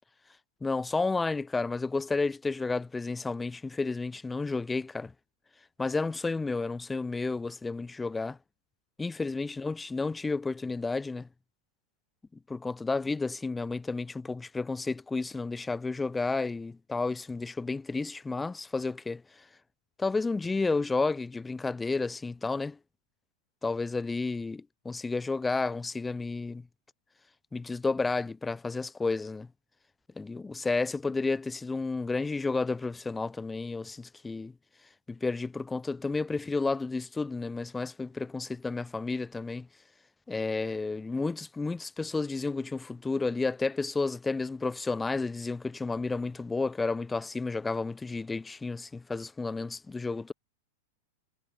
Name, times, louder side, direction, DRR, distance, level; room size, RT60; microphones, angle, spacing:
voice 1, 0.6-5.1 5.8-8.4 9.0-11.3 12.5-19.2 20.0-22.8 23.6-26.7 27.5-29.5 30.2-34.5 35.1-39.7 40.3-50.3, left 3 dB, 10° left, 7.9 m, -31 dB
hypercardioid pair, 120°, 0 cm